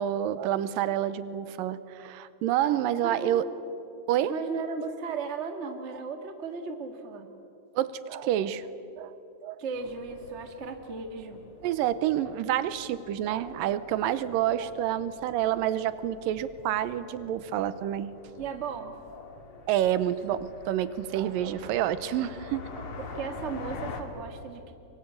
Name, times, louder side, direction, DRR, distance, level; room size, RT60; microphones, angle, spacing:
voice 1, 0.0-3.5 4.1-4.3 7.8-8.7 9.0-9.6 11.6-18.1 19.7-22.9, right 11 dB, 85° right, 14 dB, 2.5 m, -28 dB
voice 2, 3.0-3.5 4.3-7.3 9.6-11.4 18.4-18.9 21.5-21.6 23.1-24.7, right 5 dB, 35° right, 6 dB, 1.1 m, -36 dB
sound 1, 9.7-24.0, left 4 dB, 45° left, 2.4 m, -46 dB
24.0 x 23.0 x 8.4 m, 2.9 s
omnidirectional pair, 4.0 m